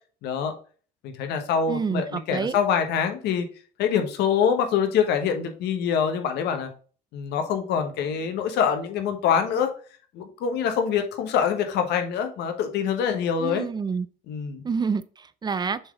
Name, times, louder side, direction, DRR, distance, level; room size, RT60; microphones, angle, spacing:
voice 1, 0.2-0.5 1.0-3.4 3.8-6.7 7.1-9.7 10.1-13.6 14.3-14.6, left 7 dB, 80° left, 1.2 m, -25 dB
voice 2, 1.7-2.6 13.4-14.1 14.6-15.8, right 5 dB, 25° right, 0.4 m, -28 dB
7.0 x 3.9 x 3.7 m
cardioid pair, 110°, 17 cm